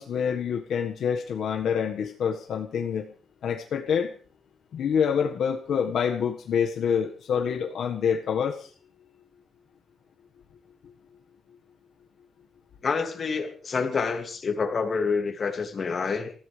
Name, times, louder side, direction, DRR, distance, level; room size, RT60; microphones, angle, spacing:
voice 1, 0.0-3.1 3.4-4.1 4.7-8.7, left 7 dB, 70° left, 3 dB, 1.6 m, -27 dB
voice 2, 12.8-16.3, left 5 dB, 40° left, 5 dB, 2.4 m, -27 dB
26.0 x 15.5 x 3.4 m, 0.40 s
wide cardioid pair, 150°, 0 cm